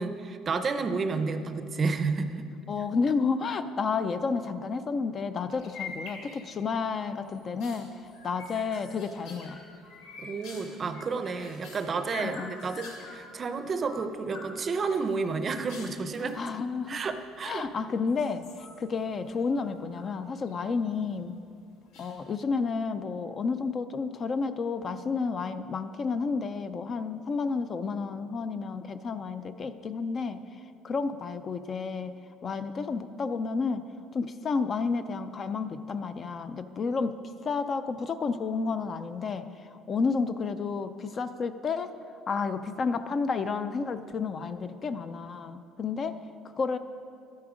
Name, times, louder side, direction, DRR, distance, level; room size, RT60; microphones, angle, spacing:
voice 1, 0.0-2.5 10.2-16.4 16.9-17.6 45.8-46.0, right 4 dB, 25° right, 9 dB, 0.6 m, -31 dB
voice 2, 2.7-9.6 12.2-12.5 16.2-17.0 17.4-21.3 22.0-30.4 30.8-32.1 32.4-33.8 34.1-37.2 37.4-42.0 42.3-46.2 46.6-46.8, left 4 dB, 30° left, 11 dB, 0.4 m, -31 dB
sound 1, 5.5-6.7 7.1-13.2 13.6-14.5 14.9-16.4 17.2-17.7 18.1-20.1 20.4-21.0 21.9-22.5, left 4 dB, 85° left, 2.8 m, -46 dB
12.5 x 9.5 x 5.0 m, 2.4 s
cardioid pair, 165°, 0 cm